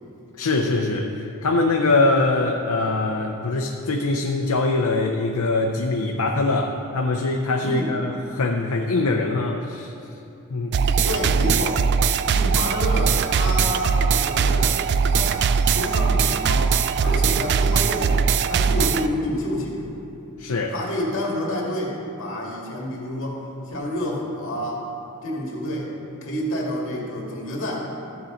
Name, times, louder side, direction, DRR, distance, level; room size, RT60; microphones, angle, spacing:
voice 1, 0.4-9.9 10.5-10.7 20.4-20.7, left 2 dB, 85° left, 2 dB, 0.6 m, -23 dB
voice 2, 7.6-8.0 11.0-11.9 12.3-14.7 15.1-15.4 15.7-20.0 20.7-24.8 25.2-25.9 26.2-27.9, left 1 dB, 60° left, -3 dB, 2.1 m, -29 dB
sound 1, 10.7-19.1, right 6 dB, 50° right, 0.3 m, -20 dB
14.0 x 7.0 x 3.9 m, 2.8 s
head